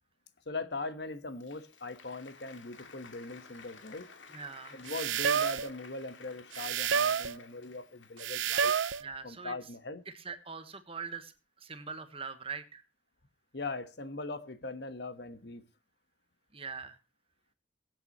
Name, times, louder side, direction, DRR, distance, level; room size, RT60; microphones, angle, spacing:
voice 1, 0.5-4.1 4.7-8.7 9.2-10.0 13.5-15.6, left 3 dB, 60° left, 1.3 m, -40 dB
Applause, 1.0-8.6, left 5 dB, 85° left, 2.4 m, -54 dB
voice 2, 4.3-4.8 9.0-9.5 10.1-12.8 16.5-17.0, right 5 dB, 30° right, 1.3 m, -42 dB
sound 1, 4.9-5.7 6.5-7.4 8.2-9.0, right 7 dB, 85° right, 0.6 m, -29 dB
23.0 x 8.4 x 3.1 m
head